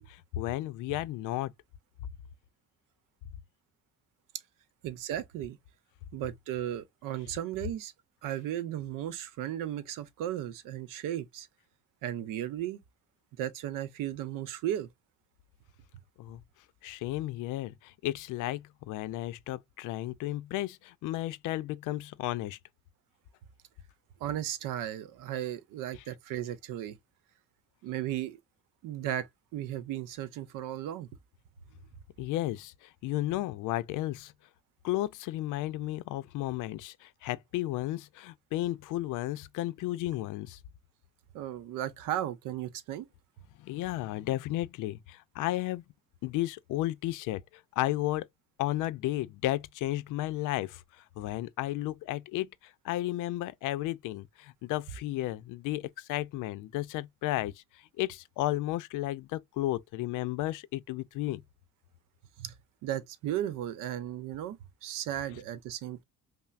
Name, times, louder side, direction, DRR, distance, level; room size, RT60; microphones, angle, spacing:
voice 1, 0.0-1.5 16.2-16.4 16.8-22.6 32.2-34.3 34.8-40.6 43.6-45.8 46.2-48.3 48.6-61.4, left 16 dB, 80° left, 0.5 m, -33 dB
voice 2, 4.8-5.6 6.1-7.9 8.2-11.5 12.0-12.8 13.4-14.9 24.2-27.0 27.8-28.4 28.8-31.1 41.3-43.1 62.4-62.5 62.8-66.0, right 12 dB, 85° right, 0.7 m, -35 dB
5.6 x 2.0 x 2.4 m
cardioid pair, 135°, 31 cm